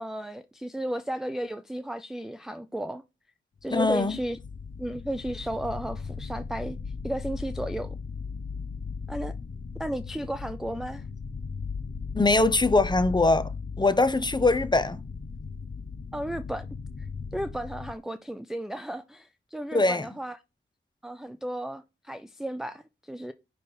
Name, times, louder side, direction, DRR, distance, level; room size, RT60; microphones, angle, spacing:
voice 1, 0.0-3.0 3.6-4.4 4.8-6.8 7.0-8.0 9.1-9.3 9.8-11.0 16.1-16.7 17.0-20.4 21.0-23.3, right 1 dB, ahead, 0.4 m, -34 dB
sound 1, 3.6-17.9, left 5 dB, 50° left, 0.8 m, -37 dB
voice 2, 3.7-4.2 12.1-13.5 13.8-15.0 19.7-20.1, left 2 dB, 20° left, 0.8 m, -22 dB
9.9 x 3.4 x 5.4 m
wide cardioid pair, 95°, 21 cm